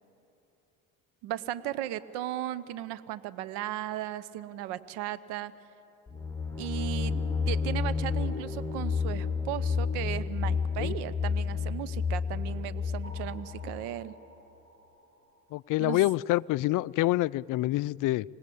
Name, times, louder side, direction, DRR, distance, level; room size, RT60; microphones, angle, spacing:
voice 1, 1.2-5.5 6.6-7.1 7.5-14.1 15.8-16.0, right 13 dB, 70° right, 16 dB, 1.0 m, -36 dB
sound 1, 6.1-13.8, left 5 dB, 5° left, 2.1 m, -31 dB
sound 2, 7.1-11.3 12.3-16.1, left 1 dB, 30° right, 7.0 m, -51 dB
voice 2, 15.5-18.2, left 17 dB, 50° left, 19 dB, 0.5 m, -27 dB
26.5 x 18.5 x 8.5 m, 2.8 s
hypercardioid pair, 65°, 42 cm